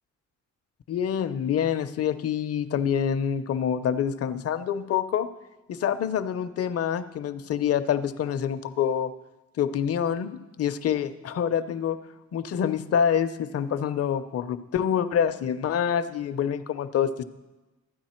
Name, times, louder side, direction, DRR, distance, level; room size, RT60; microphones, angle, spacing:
voice 1, 0.9-5.3 5.7-9.1 9.6-10.3 10.6-12.0 12.3-17.2, left 8 dB, 50° left, 10 dB, 0.7 m, -26 dB
13.0 x 9.0 x 4.4 m, 1.1 s
cardioid pair, 90°, 30 cm